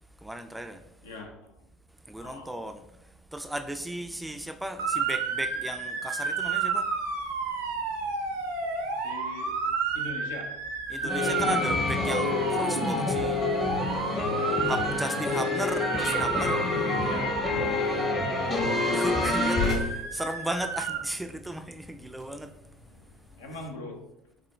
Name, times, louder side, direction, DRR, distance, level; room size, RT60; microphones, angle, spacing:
voice 1, 0.2-0.9 2.1-6.9 7.3-7.4 7.6-7.9 8.5-9.1 10.9-13.5 14.6-17.1 18.8-22.6, right 1 dB, 5° right, 0.3 m, -36 dB
voice 2, 1.0-1.6 2.2-2.5 9.0-9.6 9.9-10.6 11.0-11.4 15.2-15.5 17.0-17.4 17.9-18.3 22.9-23.0 23.3-24.1, left 2 dB, 75° left, 0.6 m, -41 dB
Motor vehicle (road) / Siren, 4.8-21.0, right 5 dB, 75° right, 0.6 m, -32 dB
sound 1, 11.1-19.7, left 3 dB, 30° left, 0.8 m, -28 dB
sound 2, 17.4-23.7, left 3 dB, 50° left, 1.3 m, -39 dB
6.0 x 2.2 x 3.1 m
figure-of-eight pair, 65°, 0 cm